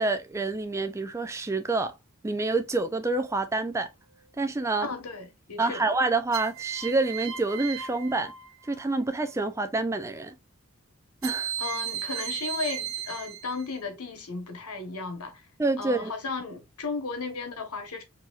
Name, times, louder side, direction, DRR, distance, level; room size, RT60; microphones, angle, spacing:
voice 1, 0.0-1.9 2.2-3.9 4.4-4.9 5.6-8.3 8.7-10.3 11.2-11.5 15.6-16.1, right 3 dB, 15° right, 0.4 m, -27 dB
sound 1, 3.2-3.8 6.3-9.0 11.2-13.8, right 10 dB, 65° right, 0.7 m, -36 dB
voice 2, 4.8-5.8 11.6-15.5 15.8-18.0, left 4 dB, 90° left, 1.1 m, -35 dB
4.7 x 2.8 x 2.4 m
head